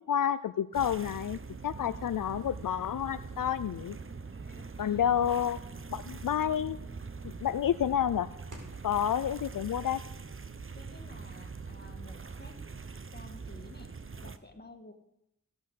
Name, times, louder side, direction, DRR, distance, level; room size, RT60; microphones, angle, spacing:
voice 1, 0.1-4.0 4.8-5.6 5.9-6.8 7.4-8.3 8.8-10.0, left 9 dB, 80° left, 14 dB, 0.5 m, -29 dB
sound 1, 0.7-14.4, right 4 dB, 40° right, 0.8 m, -43 dB
sound 2, 2.3-9.0, right 1 dB, 70° right, 3.8 m, -54 dB
voice 2, 4.5-5.2 10.7-12.6 13.1-14.9, left 2 dB, 30° left, 5 dB, 1.9 m, -52 dB
16.0 x 8.0 x 6.5 m, 0.81 s
wide cardioid pair, 55°, 32 cm